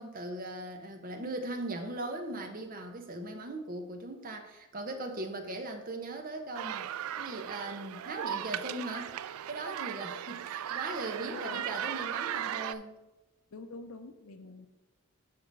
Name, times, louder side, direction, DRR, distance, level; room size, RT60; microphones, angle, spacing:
voice 1, 0.0-9.2 9.5-13.0, right 2 dB, 40° right, 4 dB, 0.9 m, -39 dB
sound 1, 6.5-12.7, right 10 dB, 80° right, 0.3 m, -37 dB
voice 2, 11.2-11.7 13.5-14.7, left 3 dB, 80° left, 7 dB, 0.7 m, -45 dB
5.7 x 5.2 x 5.4 m, 1.0 s
head